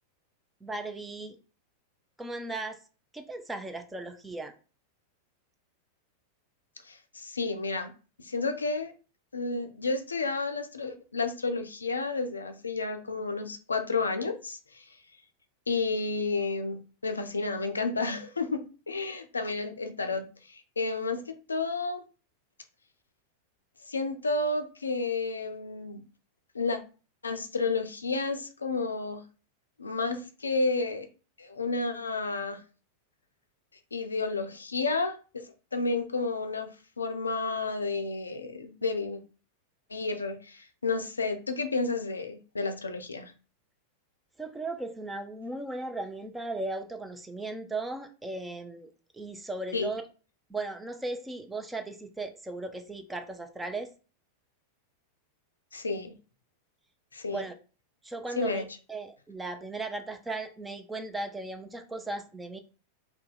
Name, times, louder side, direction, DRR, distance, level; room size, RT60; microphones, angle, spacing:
voice 1, 0.6-1.4 2.2-2.8 3.1-4.5 44.4-48.9 49.1-50.0 50.5-53.9 57.3-57.5 58.0-62.6, right 2 dB, 10° right, 6 dB, 0.4 m, -37 dB
voice 2, 6.9-7.9 8.2-8.9 9.3-14.8 15.7-22.0 23.9-26.0 26.5-26.8 27.2-29.2 29.8-31.1 31.4-32.6 33.9-35.5 35.7-36.7 37.0-39.2 39.9-43.3 49.7-49.9 55.7-56.1 57.1-57.4 58.4-58.6, left 3 dB, 75° left, 8 dB, 0.4 m, -31 dB
2.7 x 2.1 x 3.7 m, 0.35 s
figure-of-eight pair, 90°, 0 cm